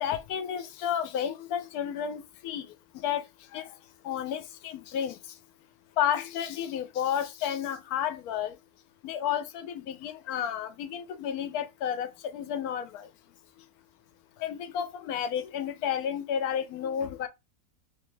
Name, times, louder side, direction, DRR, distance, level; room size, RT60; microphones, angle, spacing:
voice 1, 0.0-2.7 3.0-3.2 3.5-3.7 4.0-5.2 6.0-8.6 9.0-13.1 14.4-17.3, left 9 dB, 85° left, 1.1 m, -31 dB
3.1 x 2.3 x 3.1 m
omnidirectional pair, 1.6 m